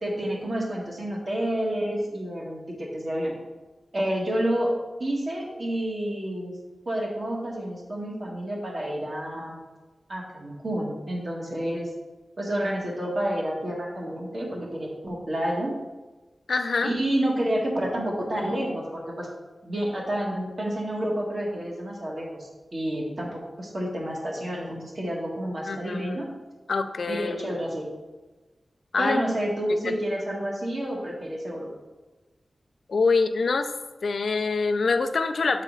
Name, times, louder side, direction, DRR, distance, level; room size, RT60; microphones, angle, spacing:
voice 1, 0.0-3.3 3.9-4.7 5.0-6.6 6.8-9.6 10.1-11.9 12.4-15.7 16.8-19.3 19.6-26.3 27.1-27.9 29.0-31.7, right 1 dB, 50° right, -3 dB, 1.6 m, -29 dB
voice 2, 16.5-16.9 25.7-26.2 26.7-27.5 28.9-29.2 29.7-30.0 32.9-33.7 34.0-35.6, left 4 dB, 80° left, 8 dB, 0.4 m, -25 dB
7.3 x 4.1 x 3.9 m, 1.2 s
wide cardioid pair, 95°, 0 cm